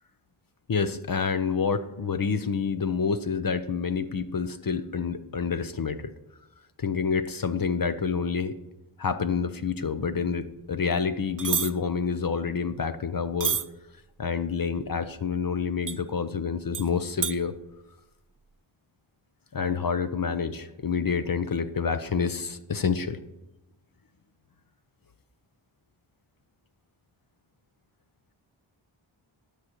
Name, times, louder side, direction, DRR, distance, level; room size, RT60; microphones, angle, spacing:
voice 1, 0.7-6.1 6.8-8.6 9.0-13.6 14.2-17.5 19.5-23.2, left 6 dB, 45° left, 10 dB, 0.7 m, -28 dB
sound 1, 11.4-11.7 13.4-13.6 15.9-16.0 16.7-16.9 17.2-17.3, right 8 dB, 40° right, 0.5 m, -27 dB
12.5 x 6.4 x 3.0 m, 0.96 s
cardioid pair, 45°, 50 cm